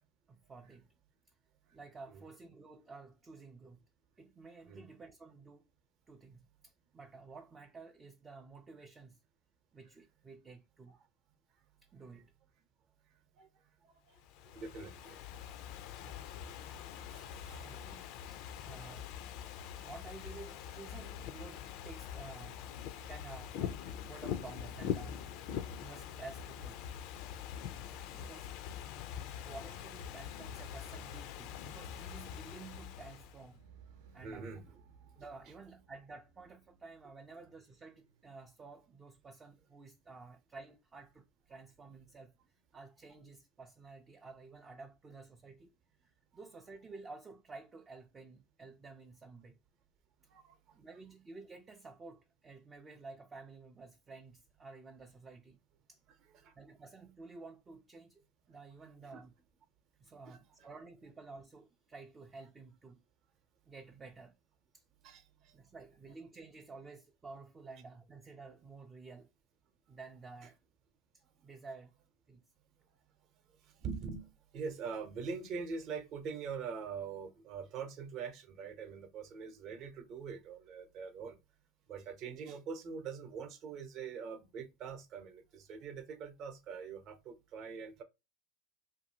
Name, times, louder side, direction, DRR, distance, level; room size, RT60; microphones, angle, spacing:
voice 1, 0.3-0.9 1.7-3.8 4.2-5.6 6.1-9.2 9.7-11.0 11.9-12.3 17.4-18.0 18.6-19.1 19.8-22.6 23.1-25.2 25.8-26.8 27.9-28.6 29.4-33.6 34.1-34.5 35.2-42.3 42.7-45.7 46.0-49.5 50.8-55.6 55.9-56.0 56.6-59.3 60.0-63.0 63.7-64.4 64.7-64.8 65.5-69.3 69.9-70.6 71.1-71.9 72.3-72.4, right 3 dB, 20° right, 0.3 m, -52 dB
Ocean / Fireworks, 14.2-33.5, left 9 dB, 60° left, 0.3 m, -44 dB
voice 2, 14.5-15.2 16.9-17.7 18.8-18.9 27.9-28.0 34.2-34.8 50.3-50.8 56.3-56.5 59.1-59.3 60.2-60.4 65.0-65.5 73.8-81.4 81.9-88.0, right 5 dB, 45° right, 0.8 m, -44 dB
sound 1, 32.2-38.5, right 6 dB, 90° right, 0.8 m, -63 dB
2.7 x 2.6 x 2.7 m
supercardioid pair, 125°, 0 cm